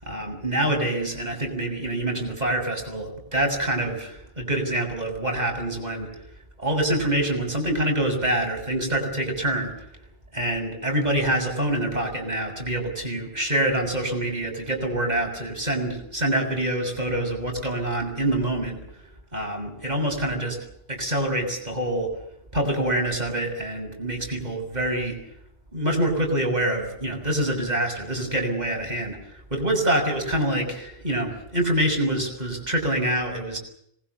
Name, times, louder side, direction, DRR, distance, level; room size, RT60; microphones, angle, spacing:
voice 1, 0.0-6.2 6.6-9.7 10.3-18.8 19.3-20.6 20.9-22.1 22.5-25.2 25.7-33.6, right 1 dB, 40° right, 2 dB, 6.9 m, -26 dB
26.0 x 21.0 x 6.8 m, 0.72 s
omnidirectional pair, 1.1 m